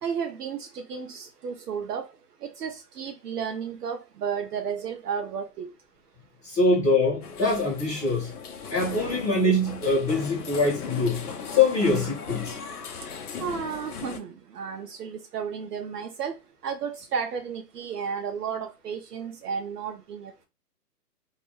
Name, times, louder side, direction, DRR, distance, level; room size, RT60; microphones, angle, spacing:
voice 1, 0.0-2.1 2.4-5.7 13.4-16.3 16.6-20.5, right 6 dB, 70° right, 0.5 m, -33 dB
voice 2, 6.4-8.3 8.7-12.6, left 2 dB, 10° left, 0.8 m, -24 dB
sound 1, 7.2-14.2, left 5 dB, 65° left, 0.6 m, -38 dB
2.3 x 2.0 x 3.0 m
hypercardioid pair, 160°, 49 cm